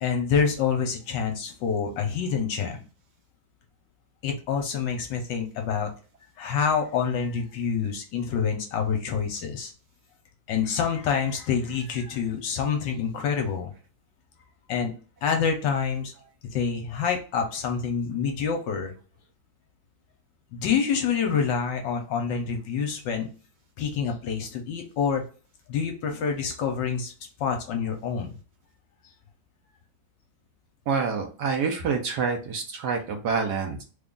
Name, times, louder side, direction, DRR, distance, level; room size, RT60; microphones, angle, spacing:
voice 1, 0.0-2.8 4.2-5.9 6.4-9.7 10.5-13.7 14.7-14.9 15.2-16.1 16.5-18.9 20.5-23.3 23.8-25.2 25.7-27.1 27.4-28.3 32.1-32.2, left 6 dB, 70° left, 4 dB, 1.2 m, -27 dB
voice 2, 30.9-33.8, right 5 dB, 70° right, 2 dB, 1.1 m, -27 dB
3.4 x 2.3 x 3.7 m, 0.36 s
omnidirectional pair, 2.1 m